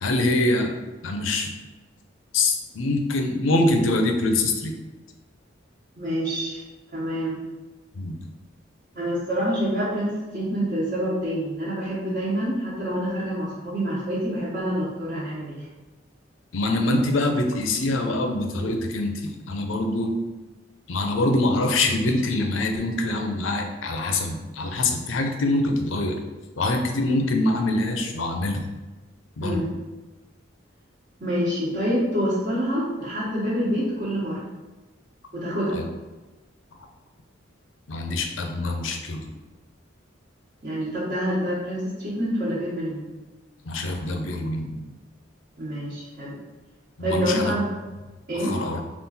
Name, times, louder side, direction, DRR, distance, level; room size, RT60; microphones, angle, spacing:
voice 1, 0.0-0.7 1.0-1.5 2.3-4.8 8.0-8.2 16.5-20.2 20.9-26.2 26.6-28.7 29.4-29.7 35.7-35.9 37.9-39.2 43.7-44.8 47.0-47.5 48.3-48.8, left 2 dB, 75° left, 4 dB, 0.6 m, -24 dB
voice 2, 6.0-6.6 6.9-7.4 8.9-15.6 29.4-29.6 31.2-34.4 35.3-35.8 40.6-43.0 45.6-46.3 47.0-47.6 48.3-48.6, equal, 50° right, -11 dB, 1.1 m, -27 dB
3.7 x 2.5 x 4.1 m, 1.2 s
head